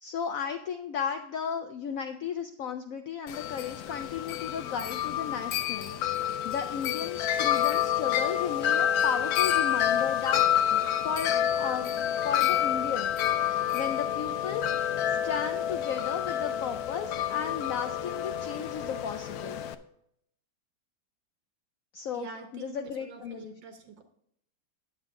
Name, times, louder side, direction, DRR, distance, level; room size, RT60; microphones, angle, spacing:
voice 1, 0.0-10.4 10.7-19.6 21.9-22.3 22.5-23.5, left 7 dB, 90° left, 6 dB, 0.7 m, -35 dB
Wind chime, 3.3-19.7, left 10 dB, 70° left, 1.0 m, -28 dB
voice 2, 22.1-24.0, right 5 dB, 70° right, 6 dB, 1.8 m, -45 dB
10.0 x 7.5 x 3.6 m, 0.71 s
omnidirectional pair, 2.1 m